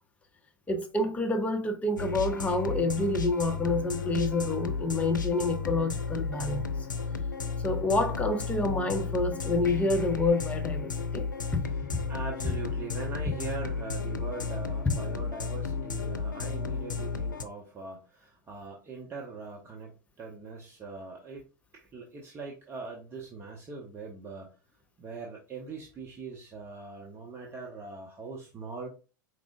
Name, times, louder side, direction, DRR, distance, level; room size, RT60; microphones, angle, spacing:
voice 1, 0.7-6.6 7.6-11.3 11.5-11.6, left 2 dB, 15° left, 0.8 m, -28 dB
sound 1, 2.0-17.4, left 5 dB, 80° left, 0.5 m, -33 dB
voice 2, 11.6-21.4 21.7-24.5 25.0-28.9, right 4 dB, 25° right, 1.0 m, -41 dB
4.8 x 3.7 x 2.4 m
figure-of-eight pair, 85°, 10 cm